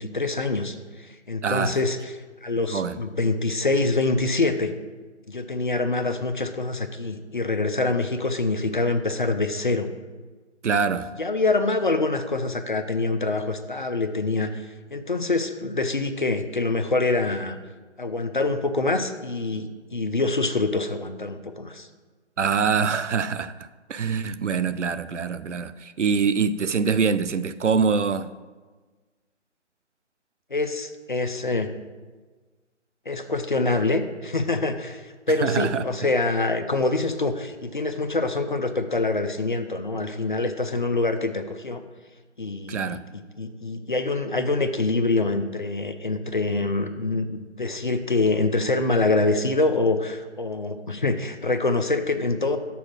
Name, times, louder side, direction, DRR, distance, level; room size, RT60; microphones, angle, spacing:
voice 1, 0.0-2.1 2.4-4.7 5.3-9.9 11.2-14.6 14.9-17.6 18.0-21.9 30.5-31.7 33.1-41.8 42.4-43.0 43.4-52.6, left 3 dB, 45° left, 0.5 m, -25 dB
voice 2, 1.4-1.8 2.7-3.0 10.6-11.1 22.4-28.3 35.4-35.8 42.7-43.0, right 5 dB, 75° right, 0.5 m, -24 dB
7.0 x 4.9 x 6.1 m
figure-of-eight pair, 150°, 36 cm